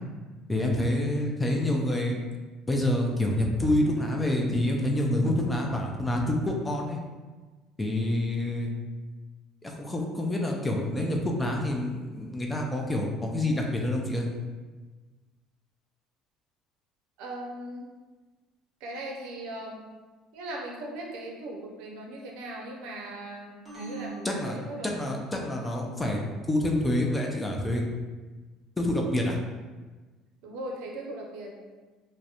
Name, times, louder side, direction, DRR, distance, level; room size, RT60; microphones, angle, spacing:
voice 1, 0.5-2.2 2.7-7.0 7.8-8.7 9.6-14.3 24.2-26.2 26.5-27.8 28.8-29.4, left 1 dB, 10° left, 0 dB, 0.3 m, -27 dB
voice 2, 17.2-17.9 18.8-19.9 20.3-25.2 30.4-31.6, right 1 dB, 80° right, 0 dB, 0.5 m, -39 dB
sound 1, 23.6-25.3, right 2 dB, 15° right, 1.0 m, -42 dB
2.3 x 2.0 x 2.8 m, 1.3 s
cardioid pair, 130°, 0 cm